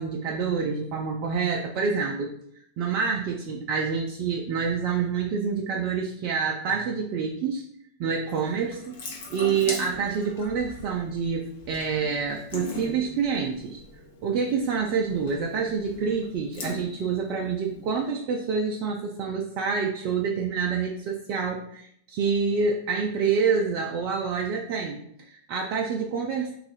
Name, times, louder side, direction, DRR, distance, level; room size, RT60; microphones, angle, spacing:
voice 1, 0.0-2.3 2.8-7.6 8.0-8.9 9.3-13.8 14.2-26.5, right 5 dB, 40° right, 1 dB, 0.4 m, -27 dB
Water tap faucet / Sink (filling or washing) / Drip, 8.3-18.1, left 3 dB, 55° left, 0.8 m, -41 dB
2.6 x 2.4 x 3.9 m, 0.70 s
figure-of-eight pair, 90°, 0 cm